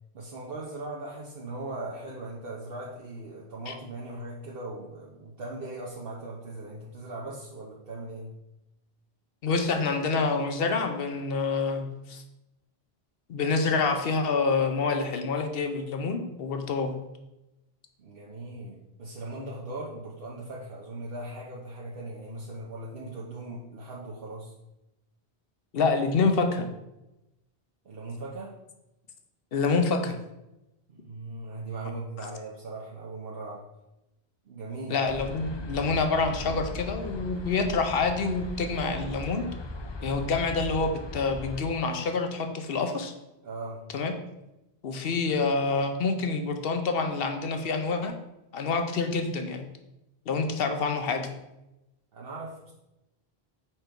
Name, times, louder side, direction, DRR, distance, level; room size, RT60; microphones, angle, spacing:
voice 1, 0.1-8.3 18.0-24.5 27.8-28.5 30.9-33.7 34.5-35.0 43.4-43.8 52.1-52.7, right 2 dB, 65° right, -4 dB, 1.0 m, -39 dB
voice 2, 9.4-12.2 13.3-17.0 25.7-26.7 29.5-30.2 34.9-39.5 40.0-43.1 43.9-44.1 44.8-48.1 48.5-49.6 50.3-51.3, left 4 dB, 65° left, 6 dB, 0.9 m, -27 dB
sound 1, 35.1-41.6, left 2 dB, 40° left, 0.4 m, -38 dB
5.2 x 4.5 x 4.5 m, 0.94 s
omnidirectional pair, 1.1 m